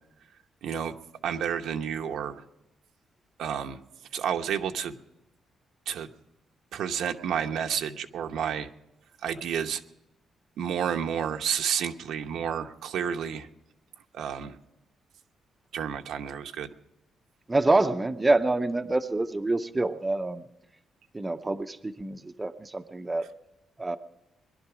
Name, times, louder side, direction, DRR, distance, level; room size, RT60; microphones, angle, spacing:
voice 1, 0.6-0.9 1.2-2.4 3.4-3.8 4.1-4.9 5.9-6.1 6.7-8.7 9.2-9.8 10.6-13.5 14.1-14.6 15.7-16.7, right 8 dB, 80° right, 5 dB, 0.9 m, -30 dB
voice 2, 17.5-20.4 21.1-23.3 23.8-24.0, right 2 dB, 15° right, 7 dB, 0.6 m, -26 dB
21.5 x 11.5 x 4.9 m, 0.92 s
cardioid pair, 155°, 0 cm